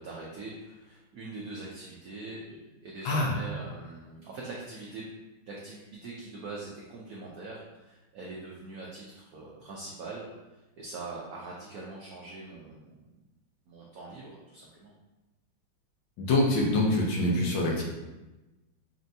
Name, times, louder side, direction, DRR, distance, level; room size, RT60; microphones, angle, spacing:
voice 1, 0.0-5.0 5.5-12.9 13.7-14.9, right 3 dB, 80° right, -4 dB, 0.8 m, -43 dB
voice 2, 16.2-17.8, left 1 dB, 70° left, -2 dB, 1.4 m, -25 dB
5.6 x 2.6 x 2.7 m, 1.1 s
omnidirectional pair, 2.3 m